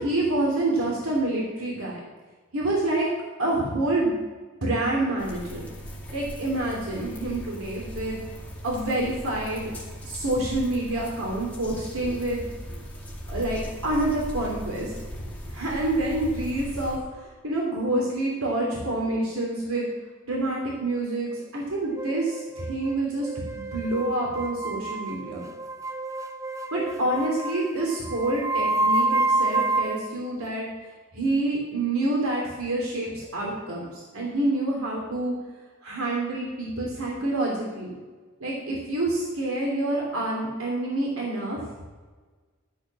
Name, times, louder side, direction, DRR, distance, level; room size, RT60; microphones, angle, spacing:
voice 1, 0.0-2.0 2.5-3.1 3.4-4.2 4.6-5.7 6.1-8.2 8.6-9.7 10.0-12.4 13.3-14.9 15.5-19.9 20.2-23.3 23.5-25.4 26.7-30.7 31.1-35.3 35.8-37.9 38.4-41.8, right 2 dB, 85° right, -3 dB, 3.1 m, -27 dB
sound 1, 5.2-17.0, equal, 5° left, 2.2 m, -38 dB
sound 2, 22.0-30.1, right 2 dB, 15° right, 0.6 m, -28 dB
12.5 x 6.9 x 7.4 m, 1.4 s
head